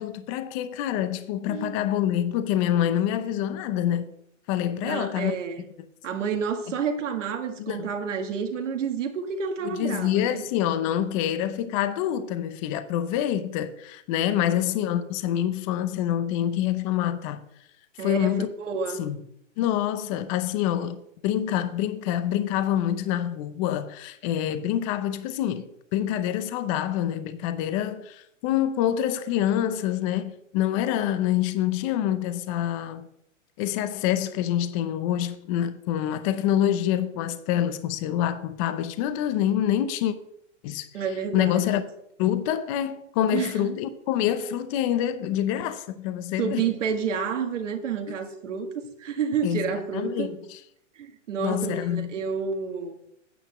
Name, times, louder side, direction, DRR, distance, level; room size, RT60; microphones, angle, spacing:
voice 1, 0.0-4.1 4.5-5.3 6.7-6.8 7.6-7.9 9.6-17.4 18.0-18.5 19.0-19.2 19.6-33.1 33.6-40.1 40.6-40.9 41.3-41.8 42.2-46.7 49.4-50.6 51.4-52.2, left 11 dB, 25° left, 0.6 m, -26 dB
voice 2, 1.5-1.8 4.8-5.7 6.0-10.4 14.5-14.6 18.0-19.1 40.9-41.6 43.3-43.8 46.4-50.3 51.0-53.0, right 6 dB, 70° right, 1.9 m, -30 dB
9.2 x 5.6 x 7.5 m
hypercardioid pair, 145°, 38 cm